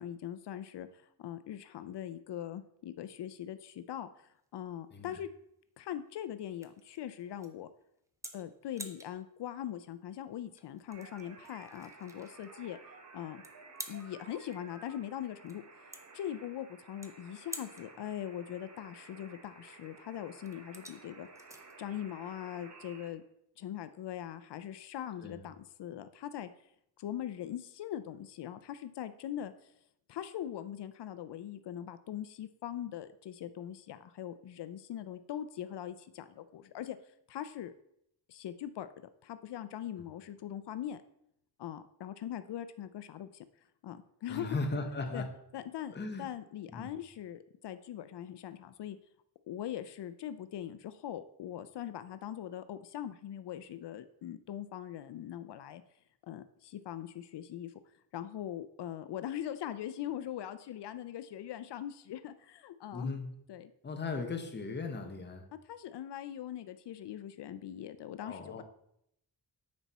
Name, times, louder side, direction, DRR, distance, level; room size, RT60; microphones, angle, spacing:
voice 1, 0.0-5.3 5.8-7.7 8.3-12.8 13.1-13.4 13.9-15.6 16.1-21.3 21.8-23.2 23.6-26.5 27.0-29.7 30.1-37.0 37.3-37.7 38.3-38.9 39.2-41.0 41.6-43.4 43.8-44.6 45.1-45.2 45.5-49.0 49.5-55.8 56.3-57.7 58.1-63.2 63.5-63.7 65.5-68.6, left 11 dB, 80° left, 12 dB, 0.5 m, -41 dB
sound 1, 4.3-23.1, right 1 dB, 10° right, 0.5 m, -52 dB
sound 2, 10.9-23.1, right 3 dB, 45° right, 1.1 m, -54 dB
voice 2, 44.3-45.4 45.9-46.3 46.7-46.9 62.9-63.4 63.8-65.5 68.2-68.6, left 3 dB, 25° left, 5 dB, 0.7 m, -37 dB
9.6 x 4.2 x 4.1 m, 0.76 s
wide cardioid pair, 180°, 40 cm